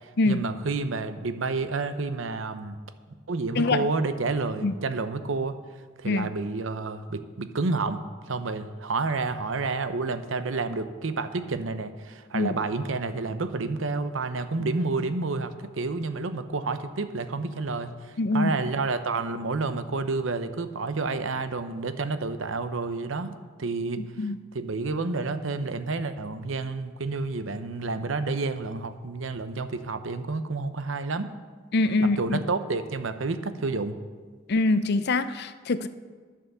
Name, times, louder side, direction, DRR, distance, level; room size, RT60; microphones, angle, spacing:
voice 1, 0.0-2.8 3.3-5.6 6.0-24.0 24.5-31.3 32.2-34.0, right 3 dB, 70° right, 10 dB, 0.8 m, -30 dB
voice 2, 3.6-3.9 4.6-4.8 6.0-6.3 12.3-12.6 18.2-18.5 24.0-24.4 31.7-32.4 34.5-35.9, left 2 dB, 55° left, 12 dB, 0.5 m, -24 dB
11.0 x 7.4 x 6.8 m, 1.5 s
head